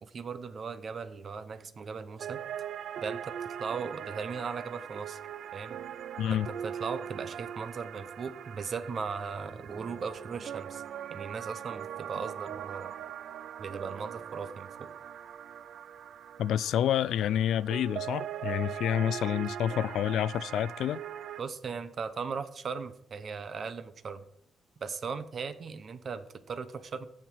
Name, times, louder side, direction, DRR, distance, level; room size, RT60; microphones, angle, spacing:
voice 1, 0.0-2.4 3.0-3.3 3.6-5.2 5.5-5.8 6.3-10.8 11.1-12.9 13.6-14.9 21.4-24.3 24.8-27.1, right 5 dB, 40° right, 0.8 m, -38 dB
sound 1, 2.2-21.4, right 9 dB, 60° right, 0.3 m, -41 dB
voice 2, 6.2-6.5 16.4-21.0, left 10 dB, 75° left, 0.3 m, -28 dB
15.0 x 5.9 x 4.6 m
cardioid pair, 145°, 0 cm